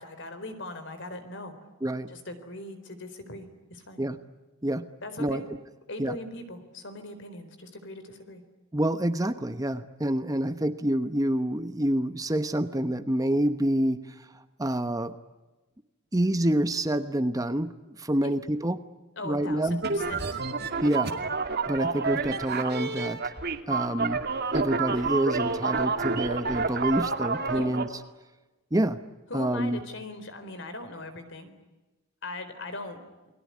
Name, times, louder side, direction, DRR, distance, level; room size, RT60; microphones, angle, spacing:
voice 1, 0.0-1.5 2.1-4.0 5.0-5.4 5.9-8.4 18.2-18.3 19.2-20.4 27.5-27.7 29.3-31.5 32.2-33.0, left 2 dB, 60° left, 9 dB, 4.1 m, -40 dB
voice 2, 8.7-14.0 14.6-15.1 16.1-18.8 19.2-19.8 20.8-21.1 21.7-23.2 23.7-24.3 24.5-27.9 28.7-29.0 29.3-29.8, right 1 dB, 15° right, 10 dB, 1.0 m, -27 dB
sound 1, 19.8-27.9, right 4 dB, 50° right, 2.5 m, -29 dB
29.5 x 20.5 x 9.7 m, 1.1 s
head